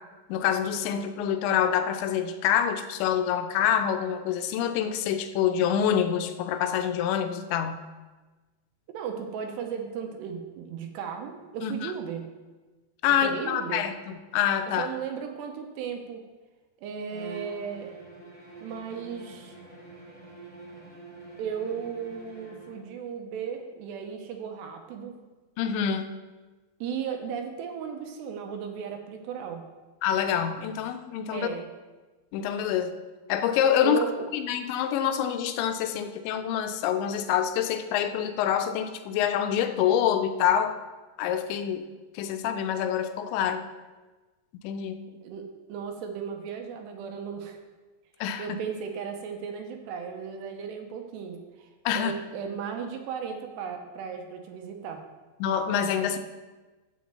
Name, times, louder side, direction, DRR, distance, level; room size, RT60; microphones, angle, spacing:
voice 1, 0.3-7.8 11.6-11.9 13.0-14.9 25.6-26.1 30.0-31.5 32.3-32.9 33.3-34.0 34.3-40.8 41.2-41.9 42.2-43.6 44.6-45.0 48.2-48.5 51.9-52.1 55.4-56.2, left 9 dB, 85° left, 8 dB, 3.0 m, -26 dB
voice 2, 8.9-12.2 13.2-13.9 14.8-16.2 16.8-17.9 18.6-19.5 21.4-25.2 26.8-29.6 31.3-31.7 33.8-34.3 45.1-45.4 45.7-47.6 48.4-51.7 51.9-55.0, right 7 dB, 80° right, 4 dB, 2.9 m, -35 dB
Bowed string instrument, 17.1-22.9, right 3 dB, 5° left, 2.2 m, -46 dB
7.3 x 6.9 x 7.6 m, 1.2 s
omnidirectional pair, 5.1 m